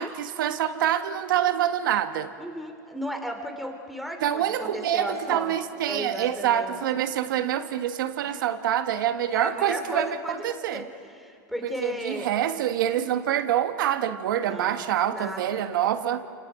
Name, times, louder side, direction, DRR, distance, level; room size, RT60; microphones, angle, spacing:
voice 1, 0.0-2.3 4.2-10.8 11.8-16.2, right 10 dB, 85° right, 8 dB, 1.4 m, -26 dB
voice 2, 2.4-5.5 5.8-6.8 8.2-8.4 9.3-12.3 14.4-15.7, equal, ahead, 3 dB, 2.6 m, -35 dB
29.5 x 27.0 x 5.0 m, 2.4 s
supercardioid pair, 140°, 11 cm